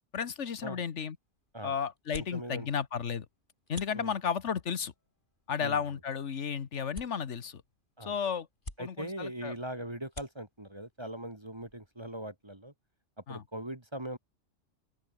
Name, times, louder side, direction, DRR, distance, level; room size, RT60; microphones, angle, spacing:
voice 1, 0.1-1.2 1.6-3.3 3.7-4.9 5.5-7.6 8.0-8.5 8.8-9.5 13.3-13.4, left 7 dB, 70° left, 1.5 m, -33 dB
sound 1, 0.7-12.2, left 2 dB, 40° left, 4.2 m, -53 dB
voice 2, 2.3-2.7 3.9-4.1 5.6-5.8 8.0-8.1 8.8-12.7 13.3-14.2, right 1 dB, 20° right, 2.3 m, -40 dB
open air
omnidirectional pair, 1.3 m